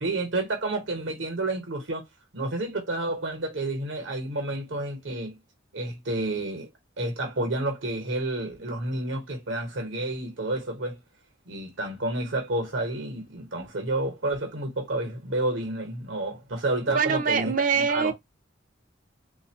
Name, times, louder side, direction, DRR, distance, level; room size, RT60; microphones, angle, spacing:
voice 1, 0.0-2.1 2.3-5.4 5.7-6.7 7.0-11.0 11.5-18.1, right 2 dB, 75° right, 1.3 m, -30 dB
voice 2, 16.9-18.1, right 6 dB, 40° right, 0.5 m, -24 dB
3.4 x 2.7 x 2.9 m
head